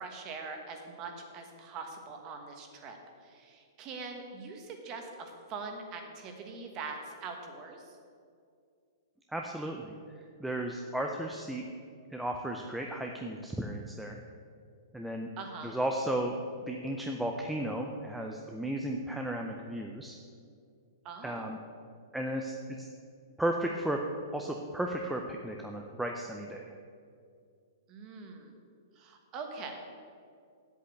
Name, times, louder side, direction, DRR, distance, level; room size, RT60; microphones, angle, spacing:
voice 1, 0.0-8.0 15.4-15.8 21.0-21.5 27.9-28.6 28.9-29.9, right 4 dB, 20° right, 4 dB, 1.2 m, -43 dB
voice 2, 9.3-9.9 10.4-11.6 12.1-14.2 14.9-15.3 15.6-20.2 21.2-21.6 22.1-22.9 23.4-24.0 24.3-26.7, right 1 dB, ahead, 1 dB, 0.4 m, -34 dB
8.3 x 8.2 x 8.3 m, 2.3 s
hypercardioid pair, 175°, 2 cm